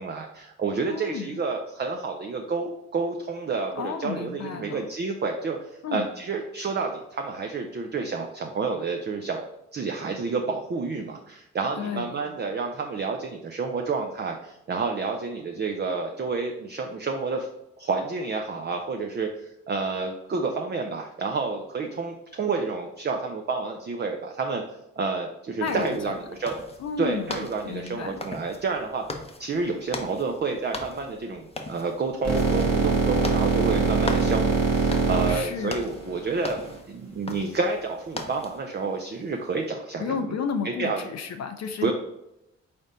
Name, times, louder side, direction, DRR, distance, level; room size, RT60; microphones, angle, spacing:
voice 1, 0.0-9.5 9.7-17.5 17.8-24.6 25.0-26.6 27.0-40.1 40.6-41.0 41.8-41.9, right 4 dB, 30° right, 3 dB, 0.6 m, -29 dB
voice 2, 0.9-1.4 3.7-4.8 5.8-6.1 11.8-12.2 25.6-26.1 26.8-27.4 27.7-28.2 35.3-35.9 40.0-41.9, left 6 dB, 55° left, 7 dB, 0.5 m, -32 dB
sound 1, 25.6-38.6, left 2 dB, 20° left, 0.7 m, -40 dB
sound 2, 32.2-36.8, right 4 dB, 55° right, 1.6 m, -23 dB
4.1 x 3.4 x 3.8 m, 0.87 s
hypercardioid pair, 45°, 33 cm